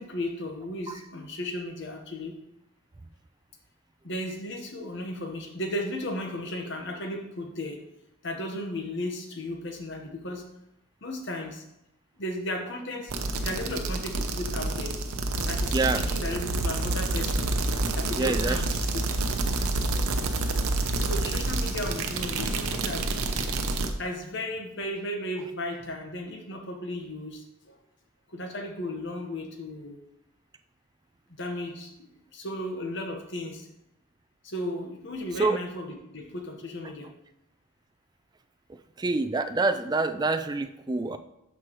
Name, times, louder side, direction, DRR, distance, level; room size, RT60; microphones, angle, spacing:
voice 1, 0.0-2.3 4.0-7.7 8.2-10.4 11.0-11.6 12.2-13.1 13.4-14.9 15.5-17.5 18.0-18.7 18.9-19.0 21.0-23.0 24.0-27.4 28.3-29.9 31.4-31.9 32.3-33.6 34.4-37.1, left 1 dB, 55° left, 3 dB, 1.2 m, -35 dB
sound 1, 13.1-23.9, right 2 dB, 85° right, 0.8 m, -28 dB
voice 2, 15.7-16.0 18.2-18.6 35.4-35.6 39.0-41.2, right 3 dB, 20° right, 9 dB, 0.3 m, -26 dB
12.0 x 4.8 x 3.1 m, 0.84 s
head